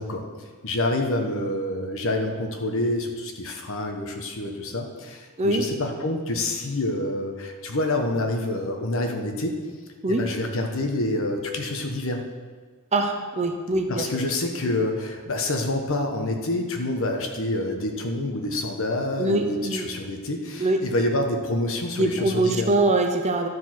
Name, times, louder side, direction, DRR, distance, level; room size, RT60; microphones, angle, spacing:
voice 1, 0.0-9.6 10.1-12.2 13.9-22.7, left 1 dB, 60° left, 3 dB, 1.2 m, -27 dB
voice 2, 12.9-14.1 19.2-19.9 20.6-20.8 21.9-23.5, right 2 dB, 30° right, 4 dB, 0.7 m, -23 dB
12.5 x 4.8 x 6.0 m, 1.5 s
head